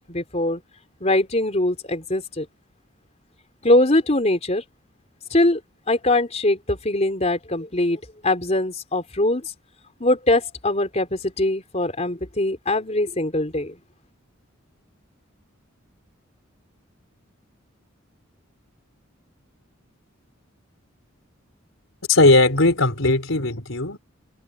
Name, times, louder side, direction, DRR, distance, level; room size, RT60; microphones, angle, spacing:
voice 1, 0.1-0.6 1.0-2.5 3.6-4.6 5.3-5.6 5.9-9.5 10.0-13.7, left 1 dB, 35° left, 3.8 m, -22 dB
voice 2, 22.1-24.0, left 2 dB, 85° left, 4.0 m, -18 dB
head